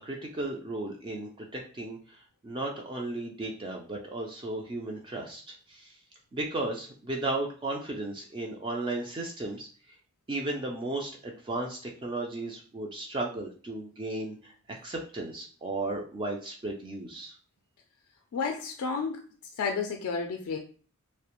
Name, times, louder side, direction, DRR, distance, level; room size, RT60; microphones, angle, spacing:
voice 1, 0.0-2.2 2.4-5.9 6.3-9.7 10.3-17.3, right 2 dB, 20° right, 0 dB, 0.3 m, -35 dB
voice 2, 18.3-19.2 19.6-20.6, left 5 dB, 70° left, 3 dB, 0.3 m, -31 dB
2.3 x 2.1 x 2.9 m, 0.40 s
head